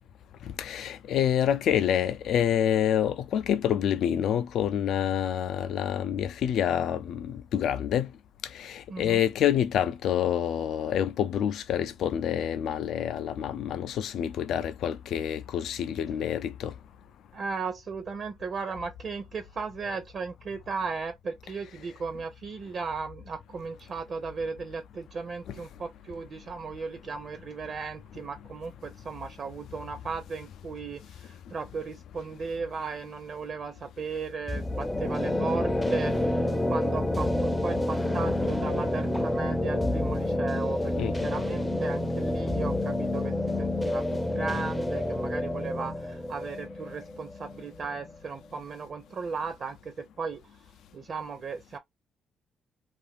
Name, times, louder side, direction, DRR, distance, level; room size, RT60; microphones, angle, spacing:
voice 1, 0.5-8.1 8.5-16.7 25.5-25.6 41.0-41.2, left 9 dB, 75° left, 0.4 m, -27 dB
voice 2, 8.9-9.2 17.3-40.9 41.2-43.3 43.6-50.4 50.9-51.8, right 5 dB, 50° right, 0.6 m, -36 dB
sound 1, 34.5-48.2, left 1 dB, 10° left, 0.5 m, -29 dB
2.5 x 2.5 x 3.4 m
cardioid pair, 90°, 0 cm